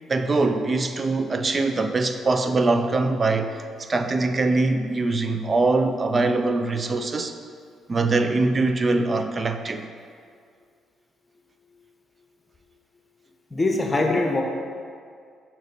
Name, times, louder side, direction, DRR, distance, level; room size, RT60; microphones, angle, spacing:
voice 1, 0.1-7.3 7.9-9.9, right 3 dB, 35° right, 7 dB, 0.5 m, -23 dB
voice 2, 13.5-14.4, left 2 dB, 25° left, 2 dB, 1.1 m, -22 dB
6.4 x 6.0 x 4.1 m, 2.2 s
supercardioid pair, 70°, 0 cm